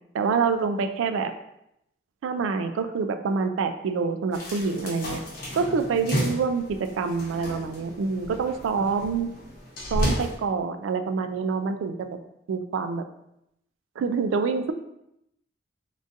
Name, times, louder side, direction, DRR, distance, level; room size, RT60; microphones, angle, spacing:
voice 1, 0.1-1.3 2.2-5.2 5.6-9.3 9.9-12.2 12.5-13.0 14.0-14.7, right 5 dB, 90° right, 8 dB, 0.3 m, -26 dB
sound 1, 4.3-10.3, equal, 50° left, 0.9 m, -32 dB
3.7 x 2.4 x 2.6 m, 0.80 s
head